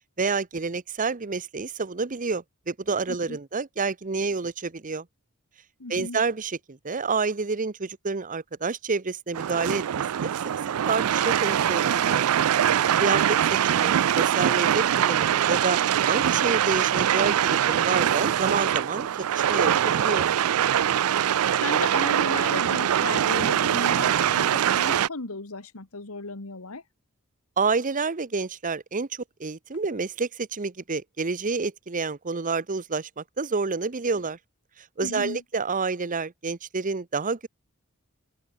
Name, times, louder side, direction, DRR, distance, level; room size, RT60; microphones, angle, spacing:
voice 1, 0.2-5.0 5.9-9.8 10.2-10.3 10.9-12.3 13.0-15.8 16.1-19.1 19.3-20.3 27.6-34.4 35.0-37.5, right 4 dB, 40° right, 0.9 m, -28 dB
voice 2, 5.8-6.2 21.6-26.8 35.0-35.4, left 3 dB, 85° left, 1.9 m, -35 dB
sound 1, 9.3-25.1, right 10 dB, 90° right, 0.4 m, -23 dB
open air
head